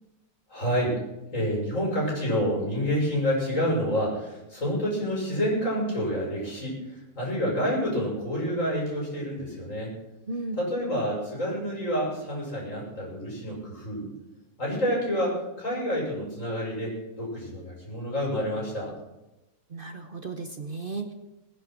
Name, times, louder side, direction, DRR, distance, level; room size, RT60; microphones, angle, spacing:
voice 1, 0.5-1.0 1.3-9.9 10.6-14.1 14.6-18.9, equal, 50° left, -3 dB, 6.6 m, -28 dB
voice 2, 10.3-10.6 19.7-21.1, right 3 dB, 40° right, 6 dB, 1.1 m, -35 dB
19.5 x 10.5 x 6.2 m, 0.98 s
omnidirectional pair, 1.7 m